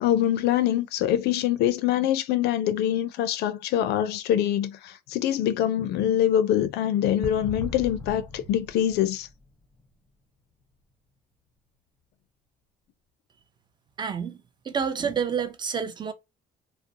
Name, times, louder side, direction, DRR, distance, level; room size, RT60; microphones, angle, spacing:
voice 1, 0.0-9.3, left 11 dB, 75° left, 0.4 m, -24 dB
sound 1, 7.2-9.9, left 2 dB, 10° left, 0.7 m, -38 dB
voice 2, 14.0-16.1, right 6 dB, 25° right, 0.4 m, -29 dB
2.4 x 2.0 x 2.6 m
cardioid pair, 110°, 17 cm